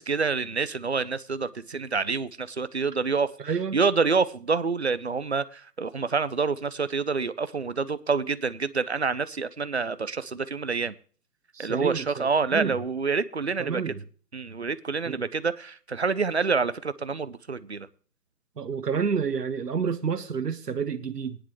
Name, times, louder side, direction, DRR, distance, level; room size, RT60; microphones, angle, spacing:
voice 1, 0.0-10.9 11.6-13.9 14.3-17.9, right 4 dB, 45° right, 0.6 m, -27 dB
voice 2, 3.4-3.8 11.5-12.8 13.6-14.0 15.0-15.2 18.6-21.4, right 6 dB, 75° right, 1.3 m, -29 dB
18.0 x 10.0 x 3.1 m
hypercardioid pair, 175°, 47 cm